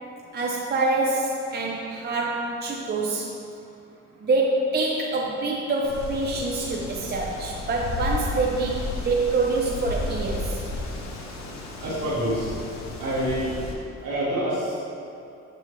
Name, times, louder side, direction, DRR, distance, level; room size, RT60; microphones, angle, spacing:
voice 1, 0.3-3.3 4.2-10.6, right 3 dB, 35° right, -2 dB, 0.7 m, -26 dB
Wind, 5.8-13.7, left 3 dB, 65° left, 1.0 m, -33 dB
voice 2, 11.8-12.5 13.0-13.5 14.0-14.9, right 1 dB, 65° right, -10 dB, 1.4 m, -26 dB
6.8 x 5.5 x 3.1 m, 2.6 s
cardioid pair, 90°, 30 cm